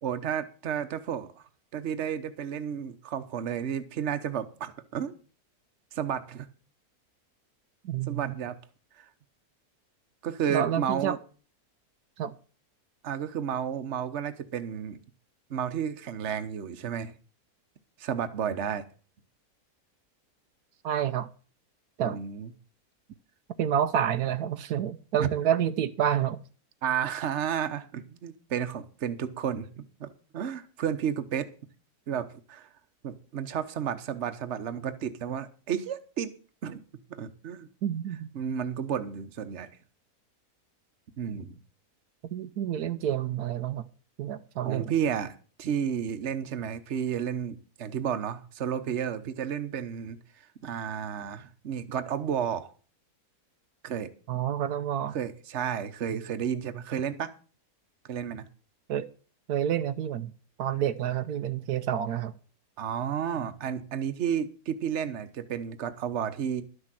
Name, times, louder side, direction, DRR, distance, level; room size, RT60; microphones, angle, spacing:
voice 1, 0.0-5.1 5.9-6.5 8.1-8.6 9.0-9.1 10.2-11.2 13.0-15.0 15.5-17.1 18.0-18.8 22.0-22.5 25.2-25.3 26.8-31.5 32.1-32.7 33.0-36.3 36.6-36.8 37.1-37.7 38.3-39.7 41.2-41.6 44.6-50.2 50.6-52.7 53.8-54.1 55.1-57.3 58.1-58.4 62.8-66.6, right 8 dB, 50° right, 10 dB, 1.2 m, -32 dB
voice 2, 7.8-8.4 10.5-11.2 12.2-12.4 20.8-21.3 22.0-22.2 23.6-26.4 37.8-38.3 42.3-43.9 44.2-44.9 54.3-55.2 58.9-59.1 59.5-60.3 60.6-62.3, right 9 dB, 80° right, 10 dB, 1.2 m, -28 dB
12.0 x 6.4 x 7.6 m, 0.38 s
omnidirectional pair, 1.6 m